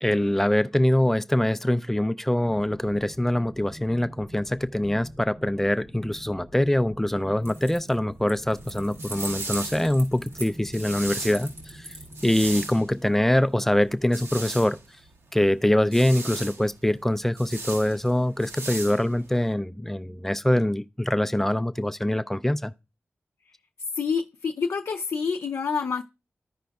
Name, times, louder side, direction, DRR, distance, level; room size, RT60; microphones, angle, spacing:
voice 1, 0.0-11.9 12.2-14.8 15.3-22.7, left 1 dB, 5° left, 0.3 m, -24 dB
sound 1, 2.3-13.0, equal, 30° right, 0.7 m, -46 dB
sound 2, 7.4-7.9 8.3-12.5, right 2 dB, 80° right, 3.3 m, -39 dB
sound 3, 8.5-19.5, right 3 dB, 65° right, 0.8 m, -39 dB
voice 2, 23.9-26.0, left 5 dB, 80° left, 0.4 m, -27 dB
14.0 x 5.2 x 2.3 m
wide cardioid pair, 115°, 5 cm